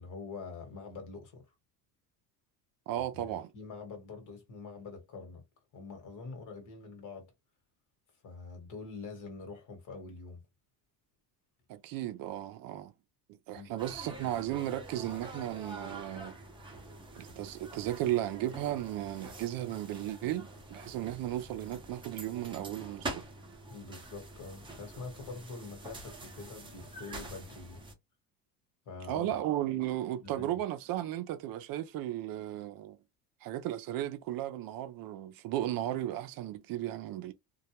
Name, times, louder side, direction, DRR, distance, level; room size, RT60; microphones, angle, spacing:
voice 1, 0.0-1.4 2.9-5.4 5.7-7.3 8.2-10.4 13.5-13.7 23.7-27.8 28.9-29.4 30.2-30.5, left 4 dB, 45° left, 1.2 m, -45 dB
voice 2, 2.9-3.5 11.7-12.9 13.3-16.3 17.1-23.2 29.1-33.0 33.4-37.3, right 13 dB, 55° right, 0.5 m, -35 dB
sound 1, 13.8-27.9, right 2 dB, 10° right, 0.7 m, -46 dB
2.3 x 2.1 x 2.8 m
cardioid pair, 120°, 41 cm